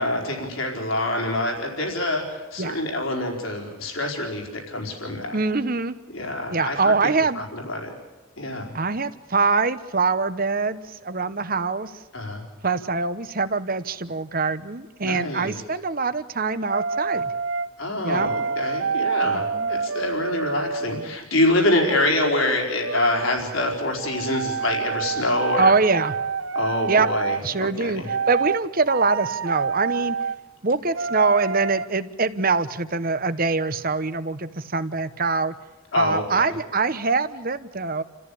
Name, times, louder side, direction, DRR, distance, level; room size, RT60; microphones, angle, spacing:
voice 1, 0.0-5.4 6.1-7.9 8.4-8.7 12.1-12.4 15.0-15.5 17.8-25.7 26.5-28.1 35.9-36.4, left 1 dB, 70° left, 0 dB, 4.7 m, -26 dB
voice 2, 5.3-5.9 6.5-7.4 8.7-12.0 12.6-17.3 18.0-18.3 19.2-19.7 25.6-26.1 26.9-27.1 27.4-30.2 30.6-35.5 35.9-38.0, right 4 dB, 40° right, 12 dB, 1.0 m, -24 dB
sound 1, 16.7-17.7 18.1-21.2 22.8-23.3 24.0-27.4 28.1-28.6 28.9-30.4 30.9-31.9, right 5 dB, 60° right, 0.7 m, -27 dB
29.5 x 14.5 x 8.5 m, 1.2 s
head